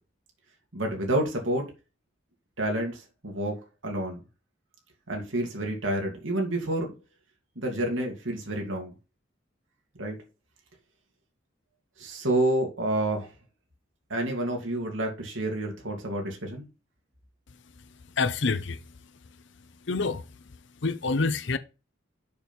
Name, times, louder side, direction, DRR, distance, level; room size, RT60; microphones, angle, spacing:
voice 1, 0.7-1.7 2.6-4.2 5.1-7.0 7.6-8.9 9.9-10.2 12.0-13.3 14.1-16.6, right 1 dB, 75° right, 2.4 m, -29 dB
voice 2, 18.2-18.8 19.9-20.2 20.8-21.6, left 4 dB, 65° left, 0.8 m, -26 dB
6.9 x 5.4 x 4.5 m
head